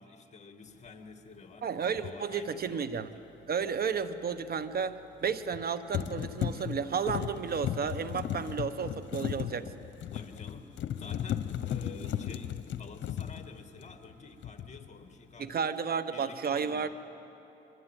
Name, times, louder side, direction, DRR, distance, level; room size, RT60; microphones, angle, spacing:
voice 1, 0.0-3.3 10.1-15.7 16.1-16.9, left 4 dB, 35° left, 6 dB, 2.4 m, -49 dB
voice 2, 1.6-3.1 3.5-9.7 15.4-16.9, right 6 dB, 50° right, 12 dB, 1.3 m, -32 dB
sound 1, 2.0-2.1 5.3-5.6 5.9-14.1 14.4-14.9, left 10 dB, 70° left, 1.0 m, -36 dB
sound 2, 8.6-9.6 10.3-12.7 13.6-14.7, right 1 dB, 75° right, 3.6 m, -55 dB
26.5 x 23.0 x 9.3 m, 2.9 s
cardioid pair, 90°, 20 cm